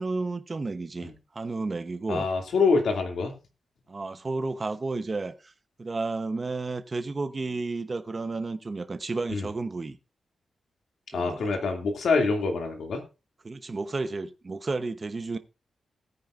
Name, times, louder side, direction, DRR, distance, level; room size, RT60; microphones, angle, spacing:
voice 1, 0.0-2.3 3.9-5.5 5.8-10.0 11.1-11.7 13.4-15.4, right 3 dB, 30° right, 0.9 m, -32 dB
voice 2, 2.1-3.4 9.3-9.5 11.1-13.0, left 4 dB, 75° left, 2.6 m, -25 dB
17.0 x 9.4 x 2.6 m
wide cardioid pair, 145°, 0 cm